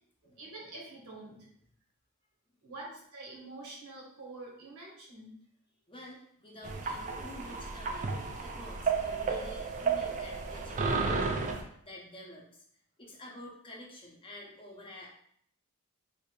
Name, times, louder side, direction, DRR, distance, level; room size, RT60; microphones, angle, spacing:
voice 1, 0.2-1.5 2.6-5.3, right 2 dB, 80° right, -3 dB, 1.2 m, -46 dB
voice 2, 5.9-12.6 13.0-15.1, equal, 25° left, -3 dB, 0.6 m, -49 dB
sound 1, 6.6-11.6, right 4 dB, 35° right, 0.3 m, -32 dB
3.3 x 2.5 x 3.1 m, 0.67 s
head